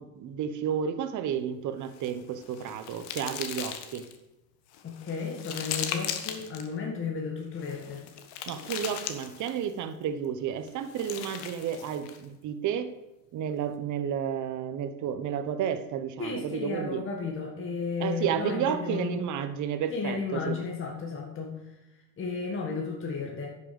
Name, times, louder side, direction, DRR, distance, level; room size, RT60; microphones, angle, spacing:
voice 1, 0.0-4.0 8.5-12.9 13.3-17.0 18.0-20.6, right 8 dB, 45° right, 10 dB, 1.1 m, -31 dB
sound 1, 1.9-4.2 4.7-6.7 7.6-9.7 10.7-12.2, left 9 dB, 60° left, 1.5 m, -38 dB
voice 2, 4.8-8.1 16.2-19.2 19.9-21.8 22.2-23.5, left 5 dB, 30° left, 0 dB, 1.9 m, -33 dB
10.5 x 6.7 x 7.0 m, 0.97 s
supercardioid pair, 125°, 42 cm